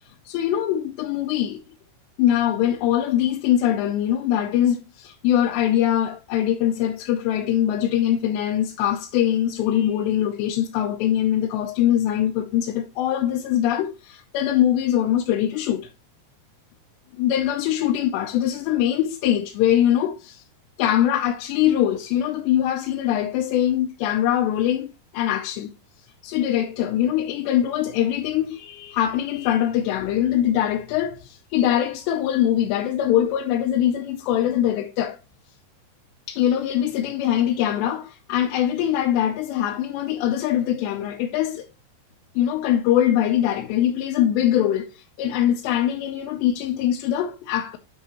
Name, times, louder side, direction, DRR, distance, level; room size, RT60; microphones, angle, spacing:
voice 1, 0.3-1.6 2.2-15.8 17.2-20.4 20.8-25.7 26.2-35.2 36.3-41.6 42.4-47.8, left 11 dB, 90° left, 2.9 m, -22 dB
8.2 x 6.3 x 2.9 m
omnidirectional pair, 4.9 m